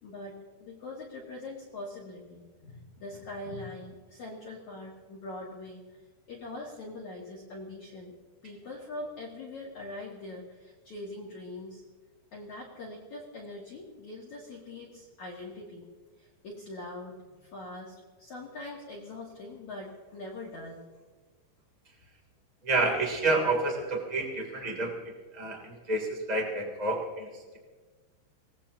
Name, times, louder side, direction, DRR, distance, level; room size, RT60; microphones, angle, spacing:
voice 1, 0.0-5.8 6.3-8.1 8.4-11.8 12.3-15.9 16.2-20.8, left 2 dB, 50° left, -4 dB, 2.8 m, -42 dB
voice 2, 22.6-25.0 25.3-27.3, right 2 dB, 10° right, 0 dB, 2.0 m, -29 dB
26.0 x 19.0 x 2.9 m, 1.4 s
omnidirectional pair, 5.5 m